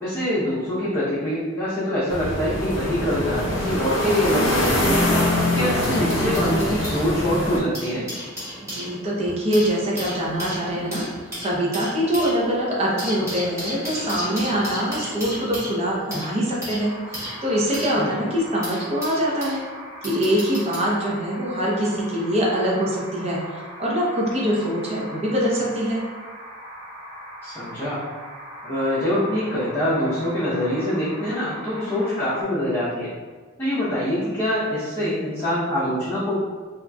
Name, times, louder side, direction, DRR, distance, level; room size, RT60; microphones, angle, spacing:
voice 1, 0.0-5.0 5.5-8.1 18.0-18.1 27.4-28.0 28.6-33.1 33.6-36.4, left 1 dB, 10° left, -15 dB, 0.6 m, -24 dB
sound 1, 2.1-7.6, left 1 dB, 70° left, 0.6 m, -23 dB
sound 2, 5.5-7.0 7.6-19.6 20.0-20.9 21.8-22.0, equal, 15° right, 1.1 m, -35 dB
voice 2, 8.6-11.0 11.4-19.6 20.0-26.0, equal, 30° right, -5 dB, 0.6 m, -24 dB
sound 3, 16.8-32.4, equal, 75° right, 1.2 m, -40 dB
2.9 x 2.4 x 2.2 m, 1.5 s
head